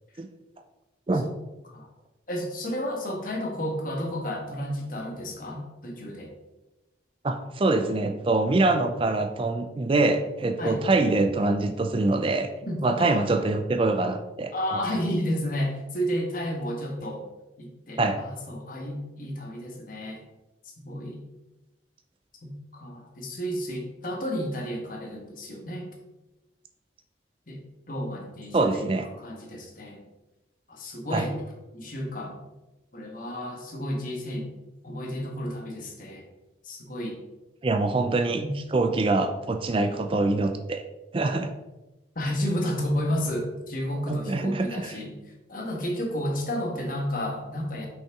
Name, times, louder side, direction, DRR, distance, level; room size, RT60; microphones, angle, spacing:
voice 1, 2.3-6.3 10.6-10.8 12.6-13.3 14.5-17.2 17.6-20.2 20.8-21.2 22.4-25.9 27.5-27.6 27.9-28.9 29.2-30.0 30.7-31.4 31.7-32.4 32.9-34.5 34.8-36.2 36.6-37.2 38.4-38.5 42.1-45.2 45.5-47.9, equal, 50° left, 0 dB, 1.4 m, -31 dB
voice 2, 7.2-12.5 12.8-14.8 18.0-18.2 28.5-29.1 31.1-31.3 37.6-38.4 38.7-40.8 41.1-41.5 44.1-45.0, right 2 dB, 30° right, 7 dB, 0.4 m, -24 dB
5.9 x 5.5 x 3.6 m, 1.0 s
head